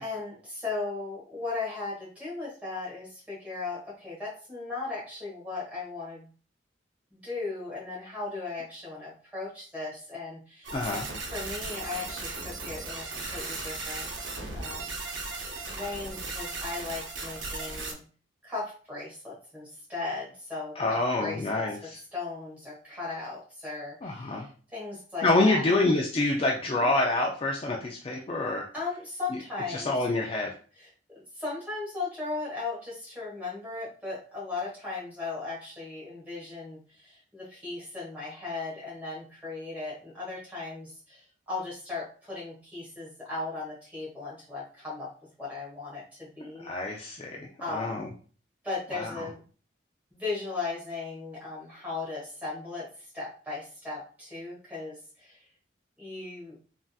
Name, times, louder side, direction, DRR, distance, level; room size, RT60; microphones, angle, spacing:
voice 1, 0.0-6.3 7.1-10.8 11.3-15.0 15.7-18.0 18.4-21.6 22.1-25.7 26.7-26.9 28.7-29.9 30.8-30.9 31.3-45.1 45.4-47.1 47.6-48.1 48.6-49.4 50.1-55.5 56.0-56.6, left 3 dB, 10° right, -6 dB, 1.3 m, -37 dB
sound 1, 10.6-17.9, right 3 dB, 75° right, 0.7 m, -37 dB
voice 2, 10.7-11.1 20.8-22.0 24.0-24.5 25.2-28.7 29.7-30.5 46.6-48.1 48.9-49.3, left 2 dB, 30° left, -1 dB, 0.3 m, -27 dB
3.4 x 2.6 x 2.3 m, 0.40 s
head